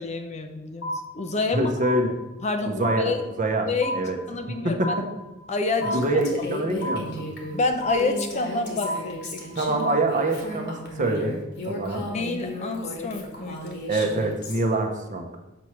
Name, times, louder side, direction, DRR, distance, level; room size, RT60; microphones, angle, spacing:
voice 1, 0.0-1.7 2.4-3.2 3.7-3.9 4.3-4.9 5.5-6.2 7.5-9.4 12.1-13.8, left 3 dB, 35° left, 6 dB, 0.5 m, -28 dB
sound 1, 0.8-1.5 1.8-2.6 2.8-3.6 3.8-4.6 4.8-5.6 5.8-6.6 6.8-7.6 7.8-8.6 8.8-9.6 9.8-10.6, equal, 90° left, 1.8 m, -32 dB
voice 2, 1.5-2.2 2.6-3.1 3.4-3.7 3.9-4.2 4.6-5.0 5.9-7.3 9.5-11.4 11.7-12.1 13.9-15.3, right 2 dB, 40° right, 4 dB, 0.8 m, -25 dB
Female speech woman speaking, 5.8-14.6, left 1 dB, 55° left, 1.2 m, -35 dB
6.8 x 3.2 x 5.8 m, 0.99 s
head